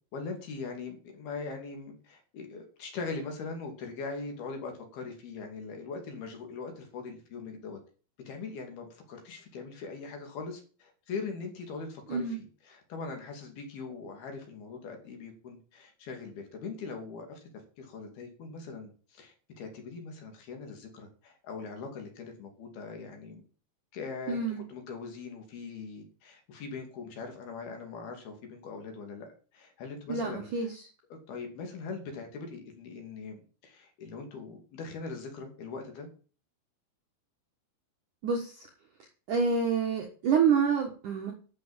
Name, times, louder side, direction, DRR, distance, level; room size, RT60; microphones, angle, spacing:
voice 1, 0.1-7.8 8.3-17.4 17.8-23.4 23.9-24.4 24.7-30.7 31.3-36.1, left 4 dB, 55° left, 3 dB, 4.3 m, -41 dB
voice 2, 24.3-24.6 30.1-30.8 38.2-38.7 39.3-41.3, right 6 dB, 60° right, 2 dB, 2.2 m, -27 dB
12.0 x 7.7 x 7.5 m, 0.39 s
omnidirectional pair, 5.5 m